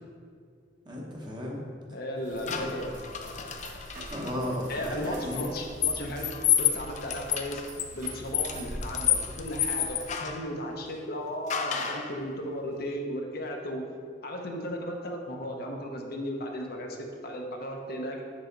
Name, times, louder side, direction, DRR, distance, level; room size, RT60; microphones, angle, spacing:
voice 1, 0.8-1.6 2.4-2.8 4.1-5.5, left 1 dB, 25° right, -2 dB, 1.0 m, -35 dB
voice 2, 1.9-3.3 4.7-6.3 6.6-7.6 7.9-13.8 14.2-18.2, equal, 60° left, 1 dB, 0.8 m, -35 dB
sound 1, 2.2-10.1, right 1 dB, 45° right, 1.3 m, -44 dB
sound 2, 2.5-4.3 5.3-10.5 11.5-12.1, left 9 dB, 40° left, 0.4 m, -30 dB
7.1 x 4.8 x 3.9 m, 2.1 s
head